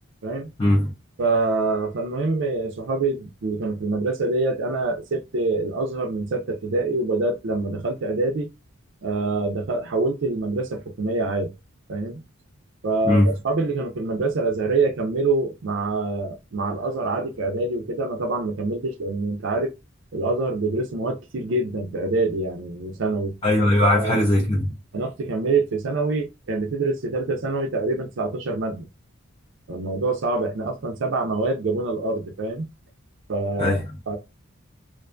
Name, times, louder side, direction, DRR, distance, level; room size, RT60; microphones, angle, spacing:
voice 1, 0.6-0.9 13.0-13.3 23.4-24.8 33.6-34.0, left 1 dB, 25° left, 0.4 m, -19 dB
voice 2, 1.2-8.5 9.0-11.5 11.9-12.2 12.8-19.7 20.1-23.3 23.8-24.2 24.9-28.9 29.7-32.7 33.3-33.8 34.1-34.2, right 3 dB, 60° right, 0.4 m, -25 dB
2.5 x 2.2 x 2.5 m
head